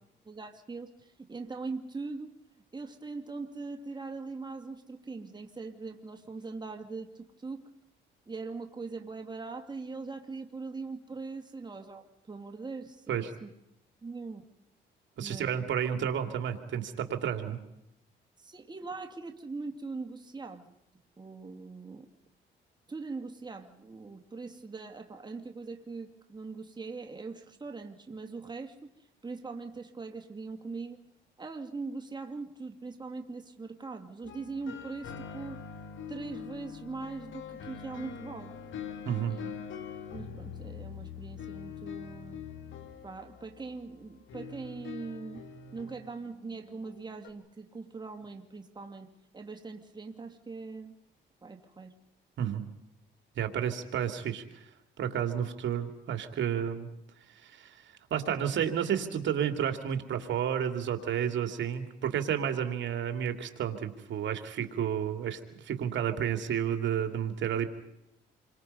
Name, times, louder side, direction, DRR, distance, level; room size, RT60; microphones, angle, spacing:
voice 1, 0.3-2.3 2.7-7.7 8.3-13.5 14.0-14.4 15.2-15.6 18.4-20.7 21.2-22.1 22.9-28.7 29.2-31.0 31.4-35.6 36.1-38.6 39.3-39.5 40.1-42.4 43.0-45.4 45.7-49.1 49.3-50.9 51.4-51.9, right 4 dB, 20° right, 5 dB, 2.4 m, -41 dB
voice 2, 15.2-17.6 39.0-39.4 52.4-52.7 53.4-54.6 55.0-56.9 57.3-67.7, right 9 dB, 70° right, 7 dB, 2.7 m, -31 dB
sound 1, 34.2-47.3, left 7 dB, 75° left, 2.4 m, -44 dB
28.0 x 24.0 x 5.5 m, 0.82 s
cardioid pair, 90°, 20 cm